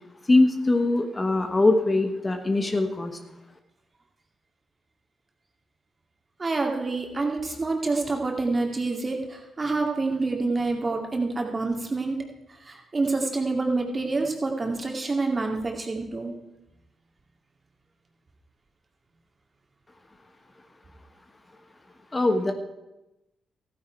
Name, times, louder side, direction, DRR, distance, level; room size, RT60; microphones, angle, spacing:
voice 1, 0.3-3.1 22.1-22.5, left 2 dB, 30° left, 6 dB, 1.4 m, -22 dB
voice 2, 6.4-12.2 12.7-16.3, right 3 dB, 35° right, 2 dB, 2.4 m, -27 dB
14.5 x 9.4 x 4.6 m, 0.99 s
hypercardioid pair, 45°, 0 cm